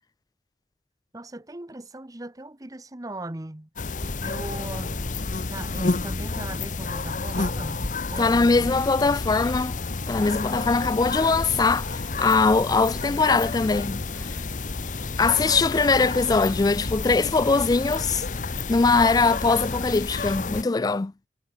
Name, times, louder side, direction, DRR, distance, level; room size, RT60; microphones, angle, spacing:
voice 1, 1.1-3.7 4.2-5.1 5.5-8.7 12.5-12.7 13.1-13.6 15.3-15.6, right 1 dB, 20° right, 1.0 m, -39 dB
sound 1, 3.8-20.6, left 3 dB, 45° left, 1.0 m, -30 dB
voice 2, 8.2-9.7 10.1-14.3 15.2-18.2 18.7-21.1, left 4 dB, 20° left, 0.3 m, -21 dB
head